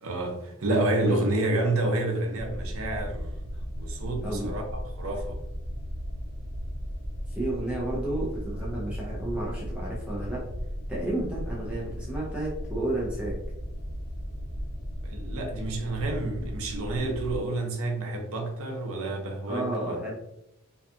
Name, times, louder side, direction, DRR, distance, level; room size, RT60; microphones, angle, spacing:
voice 1, 0.0-3.3 3.8-5.4 15.0-20.0, right 2 dB, 65° right, 3 dB, 0.5 m, -29 dB
sound 1, 2.4-17.4, equal, 90° left, 0.7 m, -36 dB
voice 2, 4.2-4.6 7.3-10.4 10.9-13.4 19.5-20.1, right 1 dB, 5° right, -6 dB, 0.5 m, -31 dB
2.7 x 2.3 x 2.4 m, 0.83 s
head